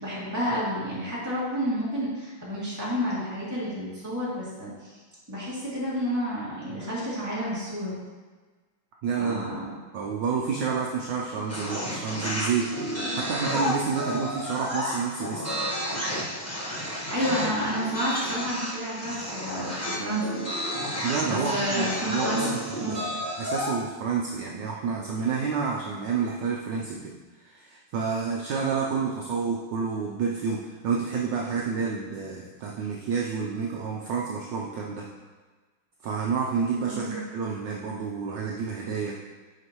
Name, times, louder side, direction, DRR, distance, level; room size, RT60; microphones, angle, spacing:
voice 1, 0.0-4.9 5.3-8.0 9.2-9.7 16.9-20.4 21.3-22.5 22.8-23.0 36.9-37.2, equal, 10° right, -9 dB, 2.2 m, -30 dB
voice 2, 9.0-9.5 9.9-12.7 13.1-15.4 21.0-23.0 23.4-27.1 27.4-35.0 36.0-39.2, right 5 dB, 70° right, -2 dB, 1.2 m, -29 dB
sound 1, 11.5-23.8, left 1 dB, 10° left, 0.8 m, -31 dB
9.7 x 4.9 x 3.0 m, 1.4 s
omnidirectional pair, 2.3 m